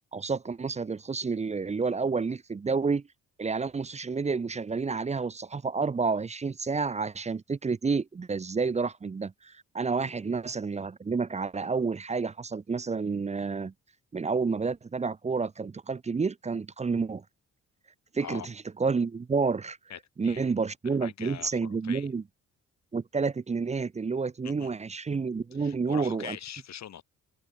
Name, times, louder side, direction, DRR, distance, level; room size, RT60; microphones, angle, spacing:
voice 1, 0.1-3.0 3.4-13.7 14.1-17.2 18.1-18.5 18.8-19.8 20.2-22.2 22.9-26.4, right 4 dB, 20° right, 0.7 m, -29 dB
voice 2, 19.9-20.5 20.8-22.1 24.4-24.8 25.6-27.0, left 10 dB, 65° left, 5.3 m, -43 dB
cardioid pair, 90°, 30 cm